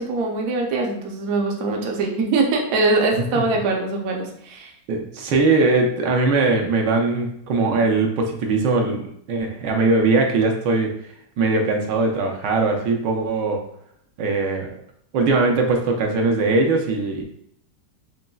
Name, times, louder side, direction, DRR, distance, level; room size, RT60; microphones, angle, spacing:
voice 1, 0.0-4.7, right 3 dB, 60° right, 1 dB, 0.9 m, -22 dB
voice 2, 4.9-10.9 11.4-13.6 14.2-14.7 15.1-17.2, right 3 dB, 75° right, 2 dB, 1.3 m, -20 dB
5.2 x 3.0 x 2.3 m, 0.69 s
omnidirectional pair, 2.0 m